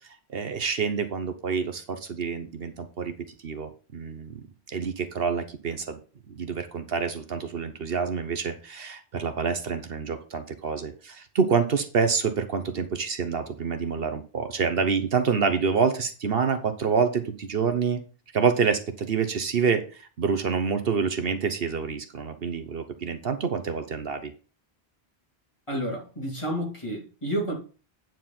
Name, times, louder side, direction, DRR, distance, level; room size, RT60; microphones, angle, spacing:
voice 1, 0.3-3.1 3.4-4.4 4.7-6.0 6.3-18.0 18.3-24.3, right 5 dB, 65° right, 1.2 m, -27 dB
voice 2, 25.7-27.5, equal, 30° left, 2.9 m, -30 dB
9.3 x 4.6 x 5.8 m
omnidirectional pair, 1.0 m